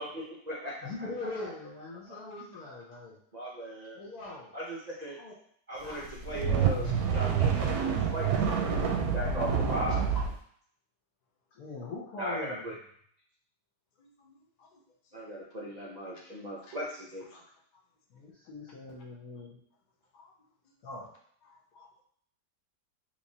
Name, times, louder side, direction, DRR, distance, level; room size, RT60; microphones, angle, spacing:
voice 1, 0.0-0.8 1.2-1.5 3.3-4.0 4.5-5.2 5.7-10.0 12.2-12.7 15.1-17.2, equal, 55° right, -6 dB, 0.4 m, -38 dB
voice 2, 0.8-3.2 4.0-4.5 5.2-5.4 5.8-6.1 8.3-9.1 11.5-12.7 18.1-19.6 20.8-21.1, left 2 dB, 70° left, -6 dB, 1.2 m, -42 dB
sound 1, 6.1-10.3, right 6 dB, 70° right, 1.0 m, -27 dB
voice 3, 14.0-14.8 15.1-15.2 16.6-16.8 17.3-17.4 20.1-20.3 21.5-21.9, left 4 dB, 90° left, -1 dB, 0.4 m, -59 dB
3.5 x 3.0 x 2.7 m, 0.63 s
omnidirectional pair, 1.8 m